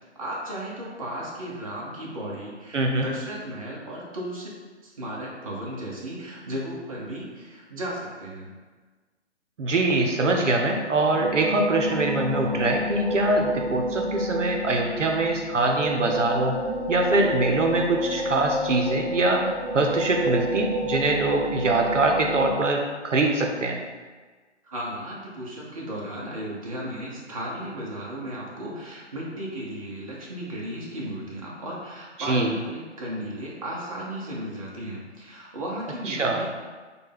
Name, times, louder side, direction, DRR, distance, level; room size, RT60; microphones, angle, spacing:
voice 1, 0.2-4.5 4.8-8.5 24.6-36.5, right 1 dB, 30° right, -4 dB, 0.5 m, -35 dB
voice 2, 2.7-3.1 9.6-16.6 16.9-23.8 32.2-32.5 36.1-36.4, right 2 dB, 90° right, 2 dB, 0.6 m, -23 dB
sound 1, 11.1-22.5, right 1 dB, 10° right, 0.9 m, -30 dB
3.2 x 2.2 x 3.3 m, 1.4 s
figure-of-eight pair, 140°, 36 cm